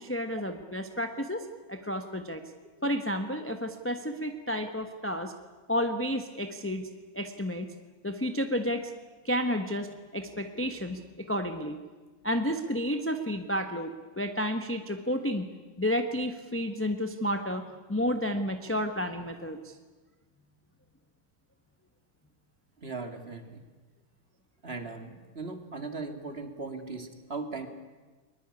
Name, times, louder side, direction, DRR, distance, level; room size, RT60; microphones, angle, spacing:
voice 1, 0.0-2.4 2.8-5.3 5.7-6.9 7.1-7.7 8.0-8.9 9.2-11.8 12.2-15.5 15.8-19.8, equal, 10° left, 6 dB, 0.7 m, -31 dB
voice 2, 22.8-23.6 24.6-27.7, right 3 dB, 30° right, 6 dB, 2.2 m, -38 dB
22.0 x 21.0 x 9.8 m, 1.3 s
omnidirectional pair, 2.4 m